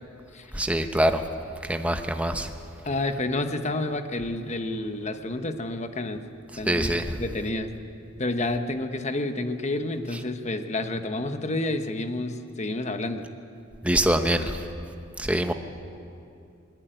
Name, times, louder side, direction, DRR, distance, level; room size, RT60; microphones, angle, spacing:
voice 1, 0.5-1.2 1.7-2.5 6.6-7.2 13.8-14.6 15.2-15.5, right 1 dB, 5° right, 6 dB, 1.1 m, -24 dB
voice 2, 2.8-6.2 6.6-6.9 7.2-7.7 8.2-13.3, left 2 dB, 35° left, 7 dB, 1.2 m, -29 dB
21.5 x 20.0 x 9.2 m, 2.6 s
head